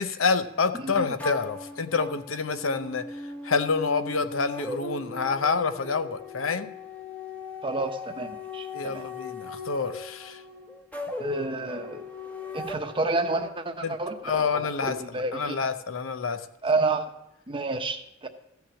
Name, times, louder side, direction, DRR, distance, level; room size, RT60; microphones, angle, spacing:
voice 1, 0.0-3.1 3.4-6.7 8.7-10.4 13.8-14.0 14.2-16.5, left 5 dB, 80° left, 10 dB, 0.8 m, -28 dB
voice 2, 0.7-1.1 7.6-9.1 11.2-12.0 12.5-15.6 16.6-17.0 17.5-18.3, right 3 dB, 25° right, 5 dB, 0.9 m, -30 dB
sound 1, 1.2-13.5, left 3 dB, 10° left, 1.0 m, -39 dB
14.5 x 6.0 x 7.0 m, 0.86 s
head